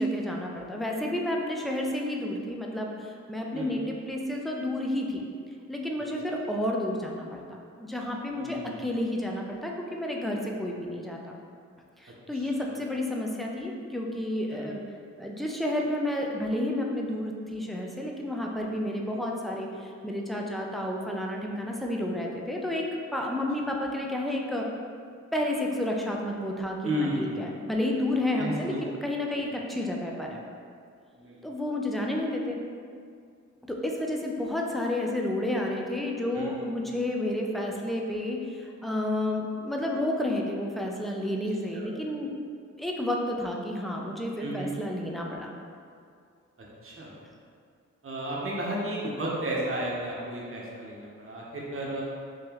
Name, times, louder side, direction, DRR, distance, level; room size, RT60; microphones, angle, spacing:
voice 1, 0.0-5.2 5.7-7.4 7.8-11.3 12.0-14.8 15.2-24.7 25.3-30.4 31.4-32.6 33.7-42.3 42.8-45.5, left 1 dB, ahead, -1 dB, 0.5 m, -31 dB
voice 2, 8.3-8.8 12.4-12.7 14.5-14.7 26.8-27.5 28.4-28.8 31.1-31.4 36.3-36.6 41.7-41.9 44.4-44.7 46.8-47.1 48.0-52.0, right 1 dB, 45° right, -4 dB, 0.9 m, -33 dB
3.8 x 2.9 x 2.9 m, 2.2 s
cardioid pair, 65°, 30 cm